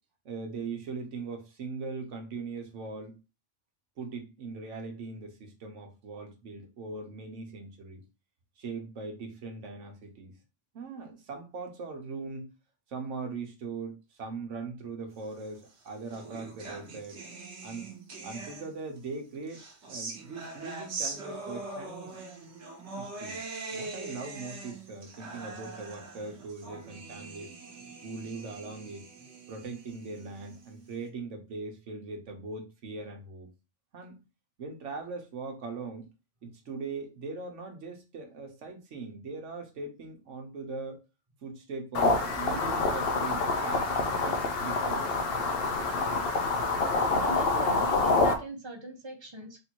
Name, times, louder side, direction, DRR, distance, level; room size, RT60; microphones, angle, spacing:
voice 1, 0.2-3.1 4.0-8.0 8.6-10.3 10.7-12.5 12.9-17.2 17.6-17.9 18.2-22.2 22.9-23.4 23.7-27.5 28.0-29.0 29.5-33.5 33.9-34.2 34.6-36.1 36.4-41.0 41.4-43.9 44.2-45.1, right 4 dB, 85° right, 4 dB, 1.3 m, -40 dB
sound 1, 15.6-19.0 19.5-30.9, right 3 dB, 70° right, 1.4 m, -42 dB
sound 2, 41.9-48.3, left 3 dB, 60° left, 0.9 m, -27 dB
voice 2, 47.0-49.6, right 2 dB, 25° right, 2 dB, 0.9 m, -40 dB
3.5 x 2.7 x 4.4 m, 0.29 s
omnidirectional pair, 1.2 m